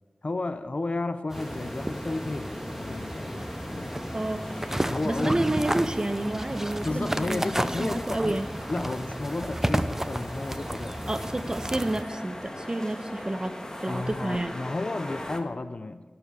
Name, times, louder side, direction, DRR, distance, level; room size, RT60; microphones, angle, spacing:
voice 1, 0.2-3.9 4.7-5.4 6.8-8.4 8.7-11.0 13.9-16.0, left 2 dB, 55° left, 10 dB, 0.6 m, -33 dB
sound 1, 1.3-15.4, left 1 dB, 25° left, 1.5 m, -39 dB
sound 2, 1.3-12.0, right 1 dB, 15° right, 0.6 m, -32 dB
voice 2, 4.1-4.6 5.0-7.5 7.8-8.5 11.1-14.5, right 1 dB, 30° right, 9 dB, 1.0 m, -29 dB
17.0 x 7.0 x 6.9 m, 1.3 s
wide cardioid pair, 55°, 2 cm